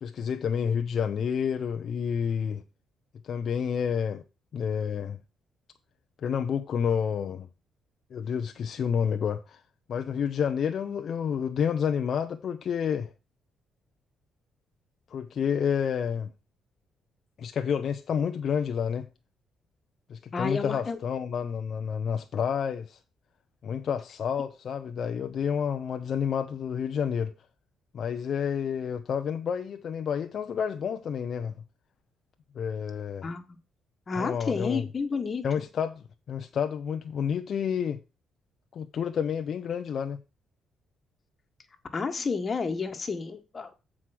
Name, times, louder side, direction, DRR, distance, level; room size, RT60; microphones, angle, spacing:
voice 1, 0.0-2.6 3.2-4.2 4.5-5.2 6.2-7.5 8.1-9.6 9.9-13.1 15.1-16.3 17.4-19.1 20.1-23.0 23.6-27.3 27.9-31.5 32.5-33.3 34.2-34.8 35.4-38.0 38.7-40.2, left 7 dB, 60° left, 0.7 m, -29 dB
voice 2, 20.3-21.0 33.2-33.6 34.1-35.4 41.9-43.7, left 4 dB, 35° left, 1.6 m, -30 dB
7.6 x 4.9 x 6.0 m
cardioid pair, 90°, 0 cm